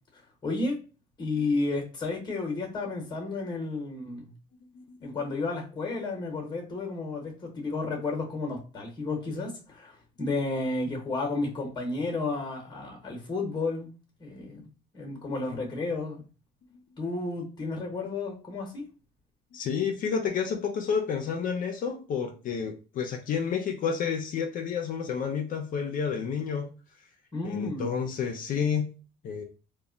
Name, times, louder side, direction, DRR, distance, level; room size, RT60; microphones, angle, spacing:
voice 1, 0.4-0.8 1.2-4.3 5.0-13.9 14.2-14.7 14.9-16.2 17.0-18.8 27.3-28.0, left 3 dB, 25° left, 0.9 m, -32 dB
voice 2, 4.7-5.1 19.5-26.7 27.4-28.9 29.2-29.4, left 6 dB, 55° left, 0.4 m, -30 dB
2.1 x 2.0 x 3.6 m
cardioid pair, 110°, 17 cm